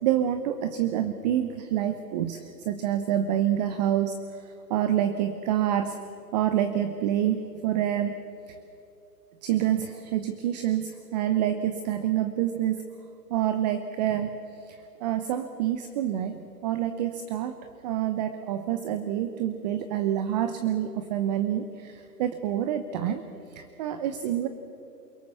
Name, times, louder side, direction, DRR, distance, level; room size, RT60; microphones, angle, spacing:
voice 1, 0.0-6.0 6.3-8.2 8.5-8.6 9.4-12.9 13.3-17.6 17.8-23.2 23.5-24.5, right 11 dB, 25° right, 10 dB, 0.9 m, -27 dB
28.0 x 18.5 x 7.0 m, 2.9 s
hypercardioid pair, 140°, 48 cm